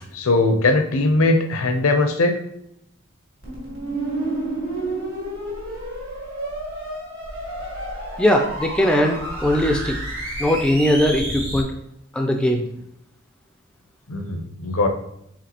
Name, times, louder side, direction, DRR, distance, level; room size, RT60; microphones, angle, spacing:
voice 1, 0.1-2.4 14.1-14.9, left 2 dB, 70° left, 6 dB, 0.6 m, -20 dB
sound 1, 3.4-11.6, right 1 dB, 65° right, 1.5 m, -30 dB
voice 2, 8.2-10.0 10.4-11.7 12.1-12.6, equal, 5° left, 2 dB, 0.3 m, -19 dB
5.0 x 3.5 x 2.9 m, 0.77 s
head